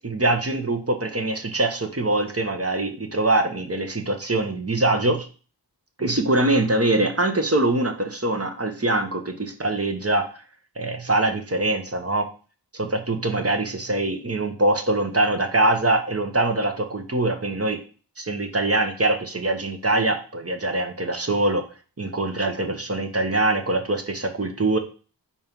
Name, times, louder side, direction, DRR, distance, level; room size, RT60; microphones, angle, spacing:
voice 1, 0.0-5.3 6.0-10.3 10.8-12.3 12.7-17.8 18.2-21.6 22.0-24.8, right 2 dB, 35° right, 5 dB, 1.1 m, -23 dB
4.5 x 4.4 x 5.3 m, 0.37 s
wide cardioid pair, 65°, 42 cm